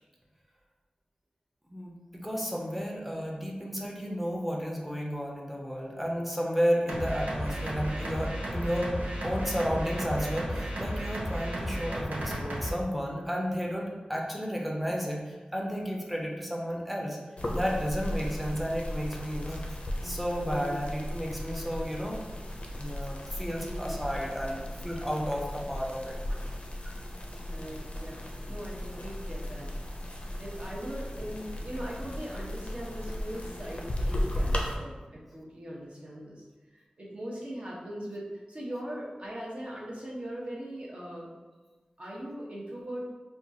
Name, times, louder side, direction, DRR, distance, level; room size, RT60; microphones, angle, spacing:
voice 1, 1.7-8.9 9.2-17.2 17.5-19.6 20.0-22.2 22.8-26.4 26.8-26.9, equal, 5° right, -1 dB, 0.6 m, -32 dB
sound 1, 6.9-12.7, equal, 90° right, 0.6 m, -33 dB
sound 2, 17.4-34.7, left 1 dB, 50° left, 0.5 m, -36 dB
voice 2, 20.4-20.9 23.6-24.0 27.3-29.7 30.4-36.4 36.7-41.3 42.0-43.1, equal, 50° right, -5 dB, 0.9 m, -40 dB
4.4 x 2.3 x 2.7 m, 1.3 s
wide cardioid pair, 75°, 3 cm